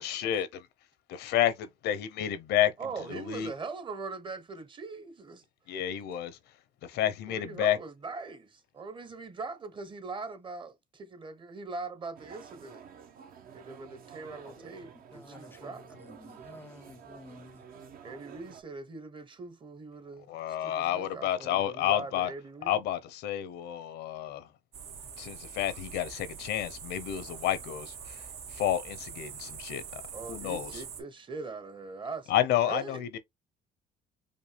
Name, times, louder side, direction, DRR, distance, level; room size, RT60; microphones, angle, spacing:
voice 1, 0.0-0.5 1.1-2.7 3.1-3.5 5.7-6.4 6.8-7.8 20.3-22.3 22.7-24.5 25.2-28.2 28.5-30.0 30.3-30.8 32.3-33.2, left 11 dB, 80° left, 0.8 m, -30 dB
voice 2, 2.8-5.4 7.3-12.8 13.5-16.0 18.0-20.3 20.6-22.8 30.1-32.3 32.6-33.0, right 4 dB, 30° right, 0.9 m, -41 dB
sound 1, 12.1-18.6, right 7 dB, 60° right, 0.9 m, -50 dB
voice 3, 15.1-15.7 16.0-17.6, left 3 dB, 15° left, 0.3 m, -51 dB
sound 2, 24.7-31.0, right 6 dB, 80° right, 1.7 m, -44 dB
5.3 x 2.3 x 3.2 m
cardioid pair, 110°, 17 cm